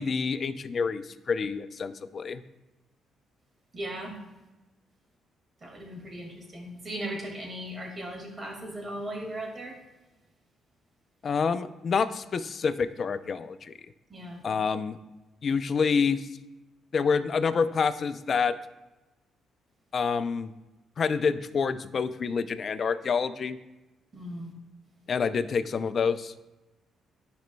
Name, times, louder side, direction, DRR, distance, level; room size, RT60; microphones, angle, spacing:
voice 1, 0.0-2.4 11.2-13.7 14.4-15.0 15.4-16.3 16.9-18.5 19.9-20.5 21.0-23.6 25.1-26.3, left 5 dB, 45° left, 12 dB, 0.5 m, -27 dB
voice 2, 3.7-4.2 5.6-9.8 14.1-14.4 24.1-24.5, right 1 dB, 35° right, 0 dB, 2.0 m, -37 dB
12.5 x 5.1 x 2.2 m, 1.1 s
cardioid pair, 90°, 0 cm